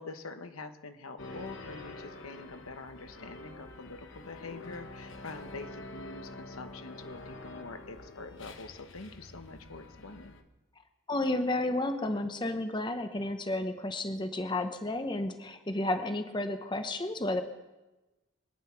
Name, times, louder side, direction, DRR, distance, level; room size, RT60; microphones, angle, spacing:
voice 1, 0.0-10.3, left 3 dB, 85° left, 8 dB, 1.2 m, -45 dB
sound 1, 1.2-10.4, left 2 dB, 60° left, 1.1 m, -47 dB
voice 2, 11.1-17.4, left 2 dB, 20° left, 7 dB, 0.8 m, -32 dB
24.0 x 9.7 x 5.8 m, 1.1 s
head